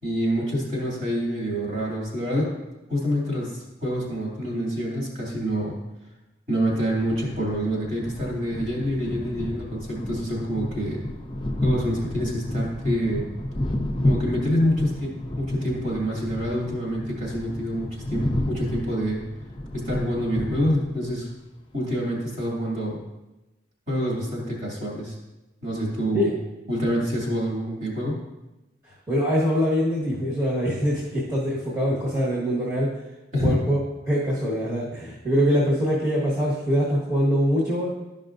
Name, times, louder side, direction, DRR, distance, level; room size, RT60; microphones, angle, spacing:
voice 1, 0.0-2.6 2.9-5.8 6.5-11.0 11.6-13.3 14.0-19.3 19.7-21.3 21.7-23.0 23.9-25.2 25.6-26.4 26.7-28.2 33.3-33.7, equal, 40° right, -4 dB, 2.7 m, -27 dB
sound 1, 6.8-21.1, left 1 dB, 25° left, 0.6 m, -31 dB
voice 2, 29.1-32.9 33.4-33.8 34.0-37.9, equal, 15° right, -7 dB, 1.5 m, -23 dB
12.5 x 5.4 x 2.6 m, 1.0 s
head